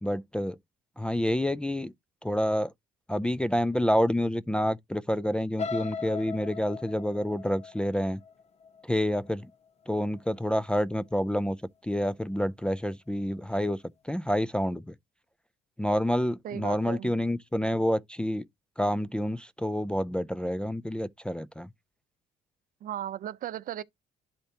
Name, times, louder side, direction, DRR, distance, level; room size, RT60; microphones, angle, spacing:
voice 1, 0.0-0.6 1.0-1.9 2.2-2.7 3.1-8.2 8.8-9.5 9.9-11.6 11.8-13.8 14.1-14.9 15.8-18.5 18.8-21.7, equal, 5° left, 0.4 m, -28 dB
sound 1, 5.6-9.5 10.0-10.3 10.7-10.8, left 5 dB, 40° left, 0.9 m, -38 dB
voice 2, 16.4-17.1 22.8-23.8, right 11 dB, 55° right, 0.7 m, -36 dB
11.5 x 4.3 x 2.9 m
cardioid pair, 110°, 17 cm